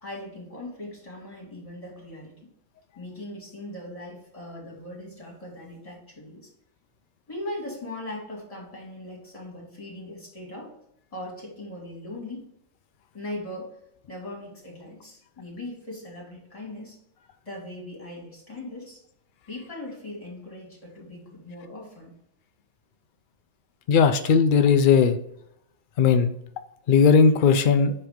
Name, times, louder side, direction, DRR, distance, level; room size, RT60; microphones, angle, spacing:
voice 1, 0.0-2.5 3.0-6.5 7.3-10.7 11.1-12.5 13.1-13.8 14.1-17.0 17.4-19.0 19.5-22.2, left 1 dB, 25° left, -2 dB, 2.5 m, -39 dB
voice 2, 23.9-25.2 26.0-26.3 26.9-27.9, left 6 dB, 85° left, 9 dB, 0.4 m, -18 dB
7.7 x 3.3 x 5.1 m, 0.76 s
omnidirectional pair, 1.5 m